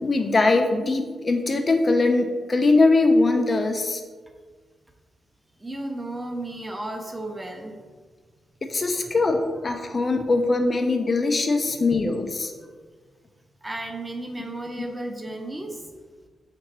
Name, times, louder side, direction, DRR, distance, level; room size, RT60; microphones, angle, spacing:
voice 1, 0.0-4.0 8.6-12.5, left 3 dB, 35° left, 5 dB, 0.4 m, -21 dB
voice 2, 5.6-7.8 9.0-9.1 11.7-11.8 13.6-15.9, right 1 dB, 15° right, 3 dB, 0.6 m, -34 dB
3.8 x 2.9 x 4.5 m, 1.5 s
cardioid pair, 95°, 0 cm